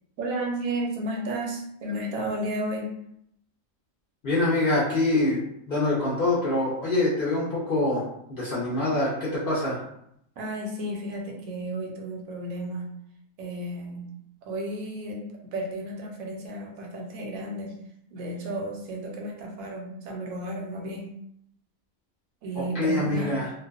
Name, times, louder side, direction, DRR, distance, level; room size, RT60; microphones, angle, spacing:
voice 1, 0.2-2.9 10.4-12.9 13.4-14.1 14.4-15.2 15.5-17.7 18.1-21.1 22.4-23.4, right 1 dB, 85° right, 0 dB, 1.0 m, -33 dB
voice 2, 4.2-5.4 5.7-8.0 8.3-9.8 22.5-23.5, left 2 dB, 55° left, -7 dB, 0.6 m, -25 dB
2.5 x 2.1 x 2.3 m, 0.74 s
omnidirectional pair, 1.5 m